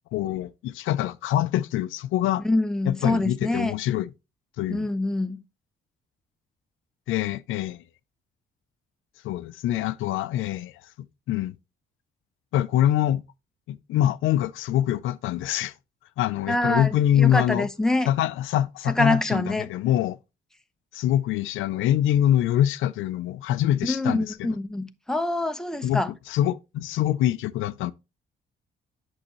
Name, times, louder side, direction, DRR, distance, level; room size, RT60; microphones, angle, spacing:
voice 1, 0.1-2.4 2.9-4.1 4.6-4.9 7.1-7.8 9.2-10.8 11.3-11.6 12.5-13.2 13.7-15.7 16.2-17.7 18.1-20.2 20.9-24.5 25.8-26.0 26.3-27.9, left 12 dB, 85° left, 0.5 m, -24 dB
voice 2, 2.4-3.7 4.7-5.4 16.5-18.1 18.9-19.7 23.8-26.1, left 2 dB, 5° left, 0.8 m, -25 dB
8.6 x 6.4 x 3.0 m
cardioid pair, 90°, 20 cm